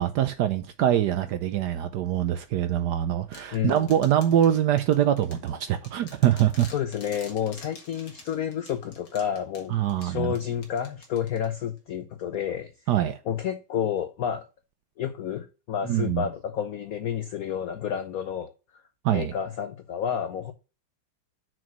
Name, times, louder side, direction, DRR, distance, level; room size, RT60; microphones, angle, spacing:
voice 1, 0.0-6.7 9.7-10.4 12.9-13.2 15.9-16.2 19.0-19.3, right 11 dB, 70° right, 1.0 m, -24 dB
sound 1, 3.3-11.8, left 4 dB, 60° left, 2.3 m, -49 dB
voice 2, 3.5-4.0 6.7-12.7 13.3-14.4 15.0-18.5 19.1-20.5, left 9 dB, 80° left, 0.8 m, -30 dB
6.2 x 4.5 x 6.0 m
omnidirectional pair, 2.3 m